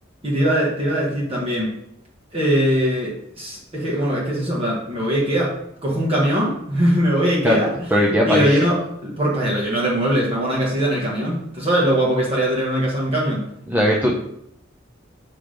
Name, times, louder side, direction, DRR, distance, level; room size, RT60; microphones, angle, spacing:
voice 1, 0.2-1.7 2.3-5.5 5.8-7.7 8.3-8.8 9.0-13.5, equal, 30° right, -5 dB, 1.3 m, -21 dB
voice 2, 7.9-8.6 13.7-14.2, equal, 10° right, -3 dB, 0.6 m, -18 dB
6.0 x 3.4 x 5.1 m, 0.76 s
head